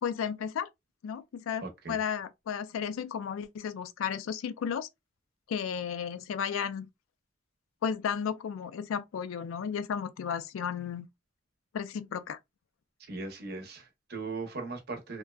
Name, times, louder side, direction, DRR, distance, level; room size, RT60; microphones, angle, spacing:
voice 1, 0.0-0.7 1.0-4.9 5.5-6.9 7.8-11.1 11.7-12.4, left 7 dB, 85° left, 0.3 m, -33 dB
voice 2, 1.6-2.0 13.1-15.2, right 3 dB, 55° right, 0.7 m, -38 dB
2.6 x 2.1 x 2.2 m
head